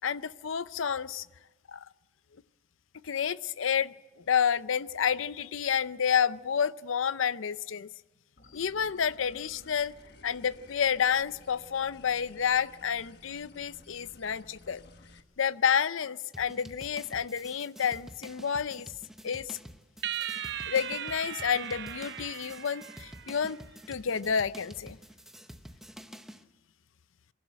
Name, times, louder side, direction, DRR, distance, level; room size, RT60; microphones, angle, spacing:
voice 1, 0.0-1.3 1.7-1.9 3.0-3.9 4.3-7.9 8.5-9.9 10.2-14.8 15.4-18.9 19.2-19.6 20.7-23.6 23.9-25.0, left 7 dB, 75° left, 17 dB, 0.5 m, -29 dB
sound 1, 8.4-15.2, left 2 dB, 50° left, 1.3 m, -55 dB
sound 2, 16.3-26.4, equal, ahead, 0.7 m, -49 dB
sound 3, 20.0-23.6, right 10 dB, 55° right, 0.7 m, -38 dB
25.5 x 12.0 x 8.8 m, 1.2 s
head